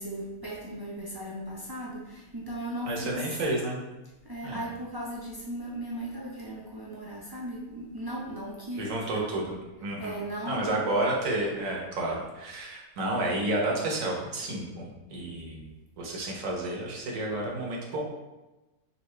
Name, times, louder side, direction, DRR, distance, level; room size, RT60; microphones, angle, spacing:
voice 1, 0.0-3.2 4.2-9.3 10.0-10.8, right 1 dB, 35° right, -6 dB, 0.3 m, -37 dB
voice 2, 2.9-3.8 4.4-4.7 8.7-10.2 10.5-15.7 16.0-18.0, right 1 dB, 65° right, -2 dB, 1.3 m, -31 dB
5.6 x 2.6 x 3.1 m, 1.1 s
omnidirectional pair, 1.6 m